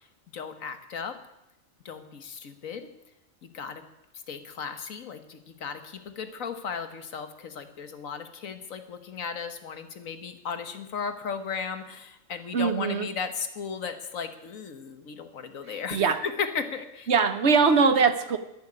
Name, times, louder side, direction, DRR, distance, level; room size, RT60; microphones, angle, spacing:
voice 1, 0.3-1.2 1.8-2.9 3.4-3.8 4.3-17.1, left 6 dB, 75° left, 8 dB, 1.7 m, -35 dB
voice 2, 12.5-13.1 15.7-16.2 17.1-18.4, right 5 dB, 60° right, 10 dB, 1.1 m, -22 dB
10.5 x 10.5 x 9.8 m, 0.88 s
omnidirectional pair, 1.4 m